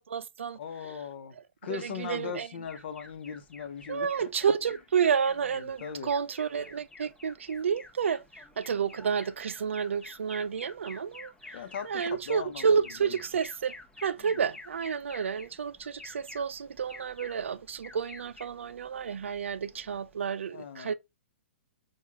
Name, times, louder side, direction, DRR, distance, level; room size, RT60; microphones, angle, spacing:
voice 1, 0.0-0.6 1.7-2.5 3.9-8.2 8.6-20.9, right 6 dB, 90° right, 0.4 m, -30 dB
voice 2, 0.6-1.4 1.6-4.3 5.5-6.1 11.5-12.8 13.0-13.1 14.2-14.4 20.5-20.9, left 7 dB, 60° left, 0.8 m, -39 dB
Alarm, 2.6-20.3, left 3 dB, 10° left, 0.9 m, -50 dB
4.7 x 2.4 x 3.5 m
hypercardioid pair, 145°, 6 cm